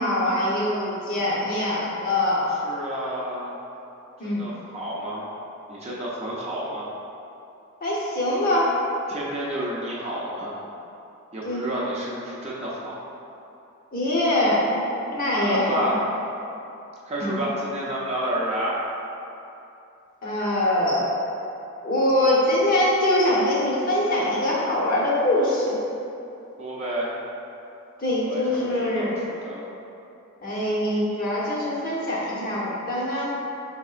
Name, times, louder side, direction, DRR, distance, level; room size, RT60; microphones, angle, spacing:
voice 1, 0.0-2.5 4.2-4.5 7.8-8.7 11.4-11.7 13.9-15.9 17.2-17.4 20.2-21.1 21.8-25.8 28.0-29.1 30.4-33.3, left 1 dB, 40° left, -6 dB, 0.8 m, -23 dB
voice 2, 2.6-3.5 4.2-5.3 5.7-6.9 9.1-10.6 11.3-13.0 15.4-16.0 17.0-18.8 26.6-27.1 28.3-29.7, right 1 dB, 30° right, -6 dB, 0.6 m, -30 dB
5.3 x 3.5 x 2.4 m, 2.8 s
head